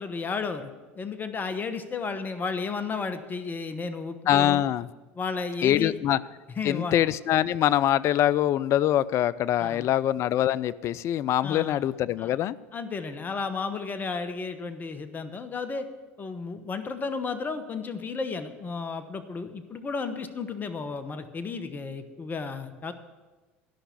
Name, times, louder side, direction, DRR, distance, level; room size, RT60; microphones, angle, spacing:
voice 1, 0.0-4.6 5.2-5.9 6.6-6.9 9.6-9.9 11.4-11.8 12.2-12.3 12.7-15.9 16.2-22.9, left 4 dB, 30° left, 10 dB, 1.0 m, -33 dB
voice 2, 4.3-4.9 5.6-6.2 6.6-12.6, left 12 dB, 50° left, 19 dB, 0.4 m, -24 dB
13.0 x 5.7 x 8.3 m, 1.2 s
hypercardioid pair, 80°, 6 cm